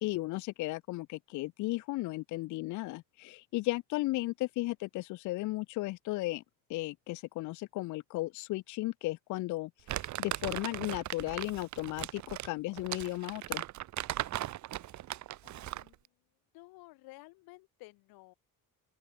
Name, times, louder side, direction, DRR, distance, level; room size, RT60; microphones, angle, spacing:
voice 1, 0.0-6.4 6.7-13.6, left 19 dB, 55° left, 0.5 m, -35 dB
Crumpling crinkling, 9.9-15.9, right 14 dB, 55° right, 1.5 m, -38 dB
voice 2, 15.4-16.0 16.5-18.3, left 22 dB, 90° left, 4.0 m, -54 dB
open air
cardioid pair, 150°, 35 cm